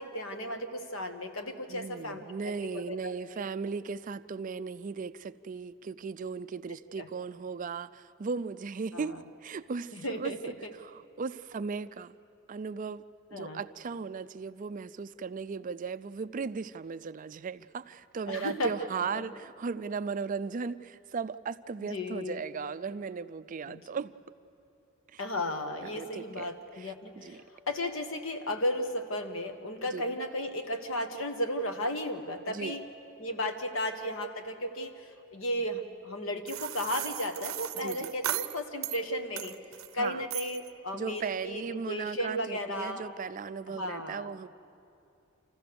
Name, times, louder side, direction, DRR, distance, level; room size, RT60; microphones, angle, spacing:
voice 1, 0.0-3.1 7.0-7.1 8.9-9.2 9.9-10.7 13.3-13.6 18.3-18.7 19.1-19.2 21.8-22.4 23.7-23.8 25.2-32.8 33.2-39.6 39.9-43.1 43.7-44.3, left 1 dB, 75° left, 7 dB, 1.4 m, -34 dB
voice 2, 1.7-12.2 12.5-13.0 13.3-24.1 25.1-25.2 25.8-27.4 29.9-30.2 32.5-32.8 37.7-38.1 40.0-40.3 40.9-44.5, right 5 dB, 40° right, 13 dB, 0.4 m, -37 dB
sound 1, 36.5-39.0 39.4-39.9 40.3-40.7, right 13 dB, 80° right, 0.6 m, -36 dB
27.0 x 15.0 x 6.9 m, 2.7 s
head